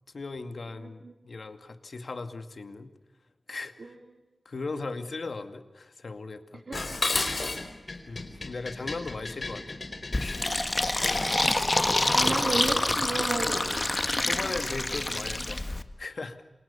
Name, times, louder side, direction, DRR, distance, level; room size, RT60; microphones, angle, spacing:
voice 1, 0.1-2.9 3.5-3.9 4.5-6.6 8.1-9.6 10.1-11.1 11.9-12.3 14.2-15.6 16.0-16.4, left 3 dB, 65° left, 10 dB, 2.2 m, -38 dB
voice 2, 0.7-1.1 3.8-3.9 6.7-7.0 12.1-13.9, right 3 dB, 65° right, 5 dB, 2.6 m, -33 dB
Dishes pots and pans, 6.7-11.4, left 3 dB, 50° left, 4.4 m, -33 dB
Fill (with liquid), 10.1-15.8, left 2 dB, 30° left, 1.7 m, -27 dB
28.5 x 26.5 x 7.0 m, 1.1 s
wide cardioid pair, 75°, 0 cm